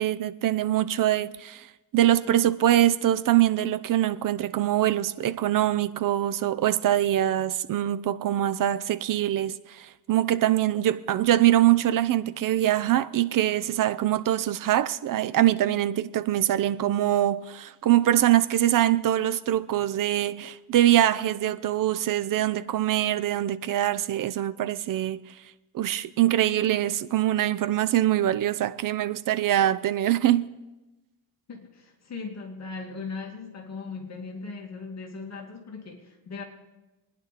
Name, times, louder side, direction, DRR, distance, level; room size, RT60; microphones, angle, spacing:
voice 1, 0.0-1.7 1.9-25.2 25.7-30.5, right 13 dB, 50° right, 0.6 m, -23 dB
voice 2, 31.5-36.4, left 4 dB, 35° left, 2.2 m, -38 dB
26.0 x 10.0 x 4.2 m
cardioid pair, 150°, 43 cm